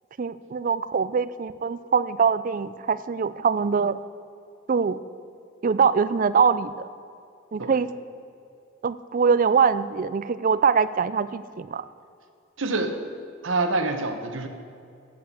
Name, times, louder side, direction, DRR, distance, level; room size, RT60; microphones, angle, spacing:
voice 1, 0.2-4.0 4.7-5.0 5.6-6.9 7.5-7.9 8.8-11.8, right 6 dB, 40° right, 14 dB, 0.4 m, -23 dB
voice 2, 12.6-13.0 13.4-14.5, right 2 dB, 70° right, 6 dB, 1.1 m, -26 dB
8.6 x 8.5 x 8.3 m, 2.5 s
head